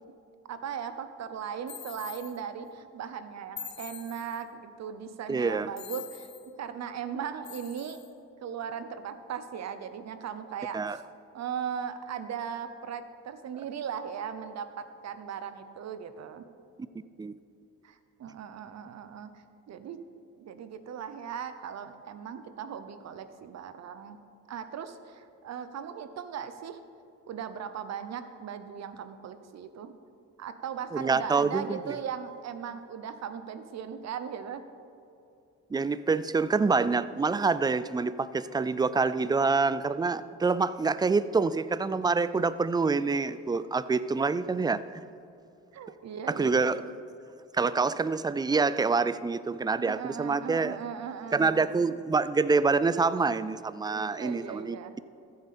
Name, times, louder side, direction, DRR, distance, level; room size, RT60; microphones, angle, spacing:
voice 1, 0.5-8.0 8.4-11.0 11.3-16.4 17.8-20.0 20.4-24.2 24.5-26.8 27.3-29.9 30.4-34.6 45.7-46.9 49.8-52.0 53.9-54.9, right 7 dB, 60° right, 11 dB, 0.8 m, -38 dB
sound 1, 1.7-2.4 3.6-4.4 5.8-6.5 7.4-8.1, left 8 dB, 60° left, 1.2 m, -43 dB
voice 2, 5.3-5.7 10.7-11.0 17.2-17.3 30.9-31.8 35.7-45.0 46.3-46.8 47.5-50.8 51.3-54.8, right 4 dB, 15° right, 15 dB, 0.3 m, -26 dB
14.5 x 8.0 x 4.3 m, 2.7 s
cardioid pair, 90°, 30 cm